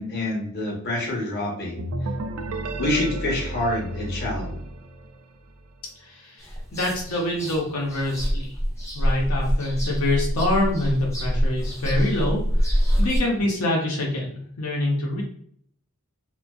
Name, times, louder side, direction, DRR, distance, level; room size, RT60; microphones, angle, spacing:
voice 1, 0.0-1.9 2.8-4.6, left 1 dB, 50° left, -2 dB, 0.8 m, -27 dB
sound 1, 1.8-5.5, right 1 dB, 70° right, 0.3 m, -32 dB
voice 2, 6.0-8.6 8.9-15.2, left 1 dB, 85° left, -1 dB, 0.6 m, -26 dB
sound 2, 6.4-13.2, equal, 15° left, 0.4 m, -25 dB
2.5 x 2.2 x 2.3 m, 0.63 s
head